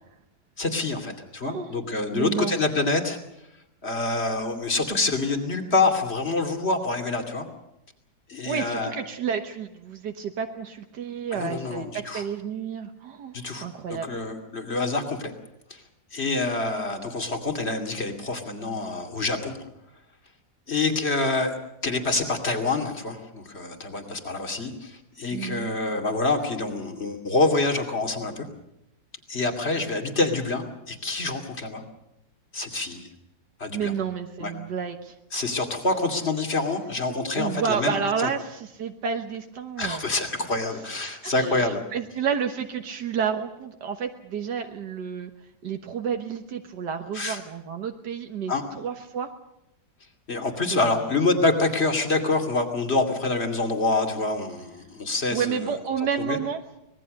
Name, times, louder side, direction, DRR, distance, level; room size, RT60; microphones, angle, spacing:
voice 1, 0.6-3.2 3.8-7.4 8.3-8.9 11.3-12.2 13.3-13.7 14.0-15.3 15.7-15.8 16.1-19.5 20.7-21.6 21.8-28.5 29.3-31.8 32.5-33.1 33.6-33.9 34.4-34.5 35.3-38.3 39.8-41.8 47.1-47.4 48.5-48.6 50.3-55.6 56.2-56.4, left 3 dB, 40° left, 4 dB, 2.9 m, -26 dB
voice 2, 1.4-1.8 2.1-2.6 8.5-14.1 25.3-25.7 33.7-35.2 35.9-40.1 40.4-40.5 40.9-45.3 45.6-49.3 50.7-51.1 55.3-56.6, right 7 dB, 85° right, 5 dB, 1.9 m, -31 dB
25.0 x 20.0 x 6.6 m, 0.86 s
omnidirectional pair, 1.8 m